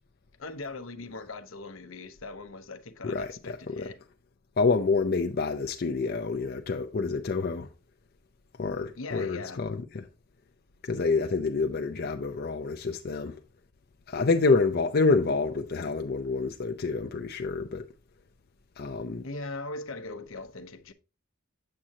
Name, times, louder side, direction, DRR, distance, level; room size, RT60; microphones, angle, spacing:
voice 1, 0.4-4.0 9.0-9.6 19.2-20.9, left 3 dB, 75° left, 0.9 m, -40 dB
voice 2, 3.0-3.8 4.6-7.7 8.6-10.0 10.8-13.4 14.1-17.9 18.8-19.2, left 4 dB, 50° left, 0.5 m, -27 dB
7.6 x 7.5 x 2.8 m
head